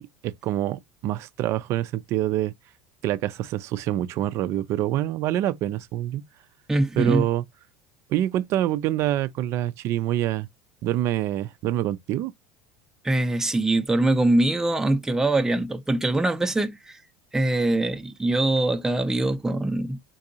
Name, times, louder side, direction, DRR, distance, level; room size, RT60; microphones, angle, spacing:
voice 1, 0.0-2.5 3.0-6.2 7.0-7.4 8.1-10.5 10.8-12.3, right 13 dB, 55° right, 0.5 m, -26 dB
voice 2, 6.7-7.3 13.0-17.0 17.3-20.0, right 2 dB, 10° right, 0.6 m, -23 dB
3.8 x 2.4 x 2.7 m
supercardioid pair, 95°, 6 cm